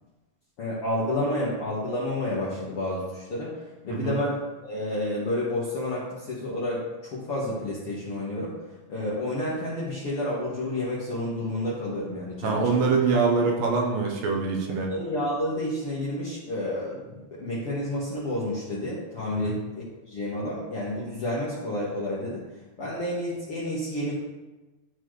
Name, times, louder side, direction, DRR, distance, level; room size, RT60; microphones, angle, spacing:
voice 1, 0.6-3.5 3.8-8.5 8.9-12.6 14.9-22.4 22.8-24.2, left 1 dB, 60° left, -7 dB, 1.5 m, -30 dB
voice 2, 3.9-4.2 12.4-14.9 19.4-19.6, right 4 dB, 75° right, 0 dB, 2.4 m, -24 dB
12.5 x 4.2 x 3.2 m, 1.2 s
omnidirectional pair, 4.3 m